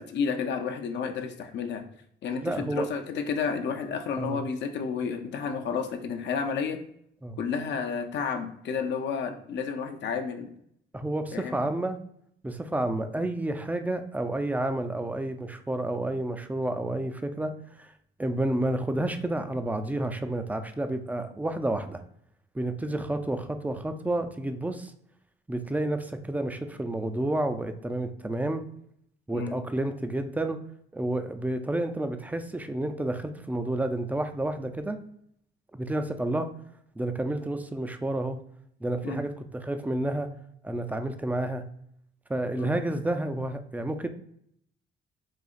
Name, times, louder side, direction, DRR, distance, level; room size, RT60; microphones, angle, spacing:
voice 1, 0.0-1.8 2.2-6.8 7.4-10.5 11.3-11.6 29.3-29.6 39.0-39.2 42.6-42.7, left 6 dB, 65° left, 6 dB, 0.5 m, -31 dB
voice 2, 2.4-2.9 4.2-4.4 7.2-7.4 10.9-12.0 12.4-17.5 17.8-17.9 18.2-22.0 22.5-24.9 25.5-28.6 29.3-30.6 30.9-35.0 35.8-36.5 37.0-38.4 38.8-40.3 40.6-41.7 42.3-44.1, right 1 dB, 10° right, 8 dB, 0.3 m, -30 dB
4.0 x 2.8 x 2.4 m, 0.71 s
cardioid pair, 90°, 20 cm